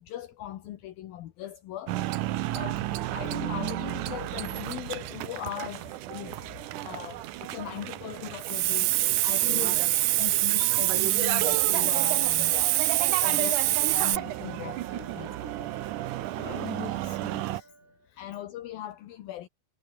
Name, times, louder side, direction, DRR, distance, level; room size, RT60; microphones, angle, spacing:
voice 1, 0.0-2.8 3.1-6.3 6.8-9.7 10.2-15.9 16.4-16.6 18.2-19.5, left 12 dB, 70° left, 3.0 m, -39 dB
sound 1, 1.9-17.6, right 15 dB, 75° right, 2.0 m, -34 dB
sound 2, 8.3-18.2, right 3 dB, 55° right, 9.5 m, -53 dB
Hiss, 8.4-14.2, right 18 dB, 90° right, 1.8 m, -24 dB
voice 2, 9.4-9.8 16.3-17.7 18.1-18.2, left 8 dB, 50° left, 3.4 m, -42 dB
omnidirectional pair, 4.6 m